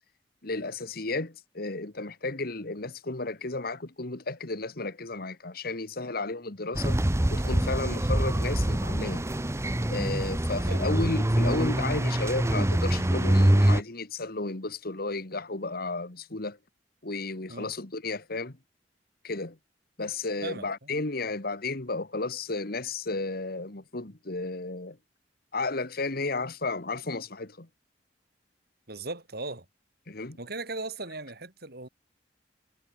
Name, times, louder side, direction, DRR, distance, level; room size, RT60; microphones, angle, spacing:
voice 1, 0.4-7.0 7.3-9.2 9.9-16.6 17.0-18.6 19.2-19.6 20.0-25.0 25.5-27.7 30.1-30.4, left 3 dB, 55° left, 1.9 m, -33 dB
sound 1, 6.7-13.8, right 1 dB, 15° right, 0.9 m, -25 dB
voice 2, 20.4-21.0 28.9-29.6 30.4-31.9, right 3 dB, 60° right, 6.7 m, -38 dB
head